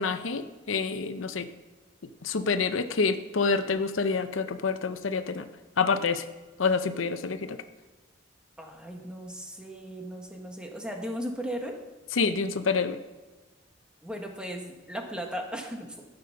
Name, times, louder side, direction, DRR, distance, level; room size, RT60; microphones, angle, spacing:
voice 1, 0.0-1.5 2.2-5.5 5.8-6.2 6.6-7.6 12.2-13.0, left 4 dB, 90° left, 10 dB, 0.7 m, -27 dB
voice 2, 8.6-11.8 14.0-16.1, equal, 5° right, 2 dB, 1.3 m, -37 dB
13.0 x 6.8 x 5.7 m, 1.2 s
head